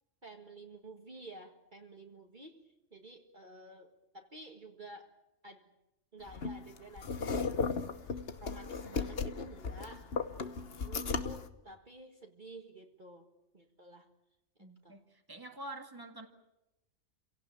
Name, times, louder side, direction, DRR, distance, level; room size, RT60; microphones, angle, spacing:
voice 1, 0.2-5.2 5.4-5.7 6.1-13.3 13.5-14.1 14.6-15.0, right 2 dB, 40° right, 3 dB, 1.9 m, -52 dB
sound 1, 6.3-11.5, left 5 dB, 50° left, 1.4 m, -36 dB
voice 2, 14.6-16.3, right 1 dB, 15° right, 5 dB, 2.0 m, -47 dB
28.0 x 17.5 x 8.7 m, 0.93 s
omnidirectional pair, 1.3 m